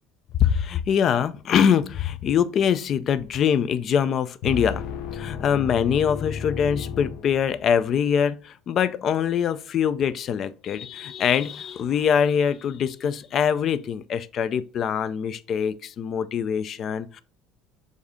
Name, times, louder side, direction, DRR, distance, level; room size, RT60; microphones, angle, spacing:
voice 1, 0.4-4.8 5.1-17.2, left 8 dB, 35° left, 0.4 m, -23 dB
sound 1, 4.4-7.9, left 6 dB, 60° left, 0.8 m, -33 dB
7.1 x 2.7 x 4.8 m
cardioid pair, 170°, 0 cm